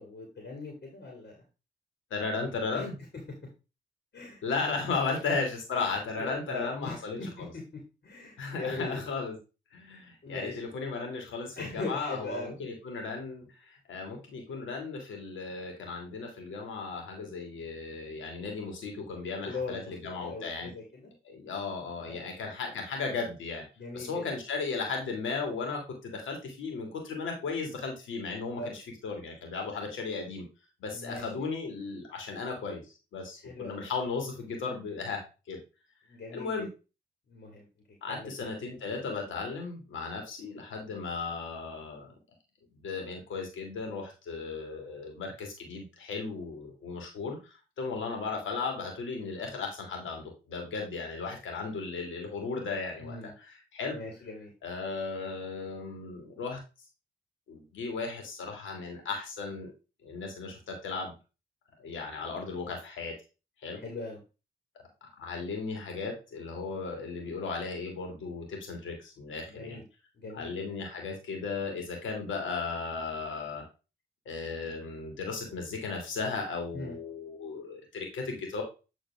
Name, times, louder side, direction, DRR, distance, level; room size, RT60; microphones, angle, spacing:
voice 1, 0.0-1.4 2.7-2.9 4.1-4.4 5.8-5.9 6.2-7.3 8.0-9.0 10.2-10.6 11.6-12.5 19.4-19.9 20.2-21.1 22.1-22.3 23.8-24.2 28.6-28.7 30.9-31.5 33.4-33.8 36.1-36.7 37.3-37.7 38.1-38.5 53.0-53.3 53.9-54.5 63.8-64.2 69.5-69.8 70.2-70.5 76.7-77.0, left 3 dB, 55° left, 0 dB, 2.6 m, -40 dB
voice 2, 2.1-3.0 4.4-7.5 8.4-9.4 9.7-20.7 21.2-23.6 23.9-30.5 30.8-35.6 36.3-36.7 38.0-42.1 42.8-54.0 54.6-56.6 57.5-59.7 60.0-61.1 61.8-63.1 63.6-63.8 65.2-69.8 70.3-73.7 74.3-78.6, left 4 dB, 90° left, 2 dB, 2.5 m, -36 dB
9.8 x 3.8 x 3.6 m, 0.30 s
cardioid pair, 50°, 19 cm